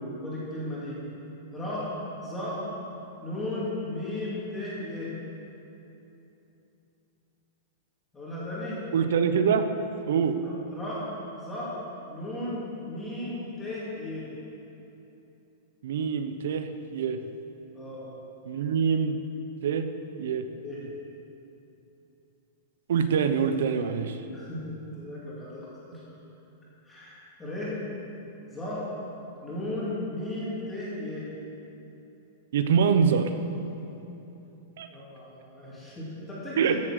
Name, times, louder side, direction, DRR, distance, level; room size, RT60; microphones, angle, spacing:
voice 1, 0.2-1.0 1.5-1.9 2.2-2.6 3.2-5.1 8.1-8.8 10.4-11.0 11.4-11.7 12.1-14.3 17.7-18.0 20.6-20.8 24.3-26.0 26.8-27.8 28.5-28.9 29.4-31.3 34.9-36.8, left 1 dB, 10° left, -8 dB, 2.8 m, -35 dB
voice 2, 8.9-9.6 10.1-10.4 15.8-17.2 18.5-19.2 19.6-19.9 20.2-20.4 22.9-24.2 32.5-33.3 34.8-34.9 36.6-36.8, right 7 dB, 70° right, 8 dB, 0.9 m, -24 dB
15.0 x 7.6 x 6.7 m, 3.0 s
supercardioid pair, 170°, 0 cm